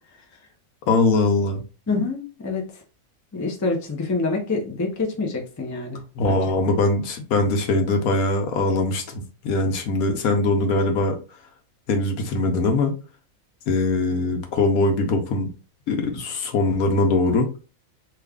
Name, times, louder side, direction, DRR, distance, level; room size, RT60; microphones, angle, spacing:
voice 1, 0.9-1.6 6.2-11.2 11.9-13.0 13.7-15.5 15.9-17.5, left 2 dB, 85° left, 1.2 m, -21 dB
voice 2, 1.9-2.7 3.3-6.4, left 3 dB, 25° left, 0.4 m, -26 dB
3.1 x 2.4 x 3.5 m
omnidirectional pair, 1.5 m